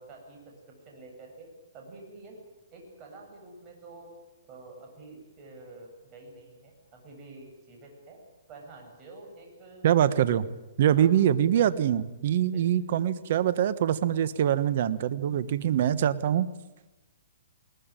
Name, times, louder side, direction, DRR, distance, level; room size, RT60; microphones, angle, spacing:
voice 1, 0.0-1.5 1.7-2.4 2.7-4.1 4.5-8.2 8.5-9.9 10.1-10.3 11.0-11.2 12.5-12.7, right 2 dB, 25° right, 1 dB, 7.7 m, -48 dB
voice 2, 9.8-10.4 10.8-16.5, right 10 dB, 50° right, 14 dB, 1.3 m, -24 dB
21.0 x 19.5 x 9.1 m, 1.1 s
hypercardioid pair, 160°, 0 cm